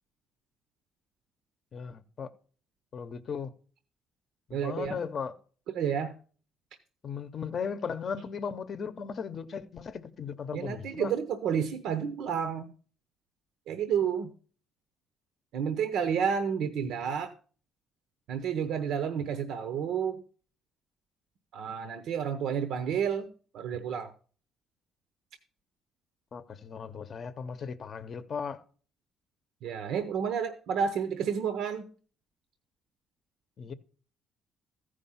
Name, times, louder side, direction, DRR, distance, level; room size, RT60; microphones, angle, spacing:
voice 1, 1.7-2.3 2.9-3.5 4.5-5.3 7.0-11.1 26.3-28.6 33.6-33.7, left 6 dB, 45° left, 0.7 m, -37 dB
voice 2, 4.5-5.0 5.7-6.1 10.5-12.7 13.7-14.3 15.5-17.3 18.3-20.2 21.5-23.3 23.5-24.1 29.6-31.9, right 7 dB, 75° right, 0.7 m, -30 dB
14.5 x 5.0 x 5.6 m
cardioid pair, 110°, 0 cm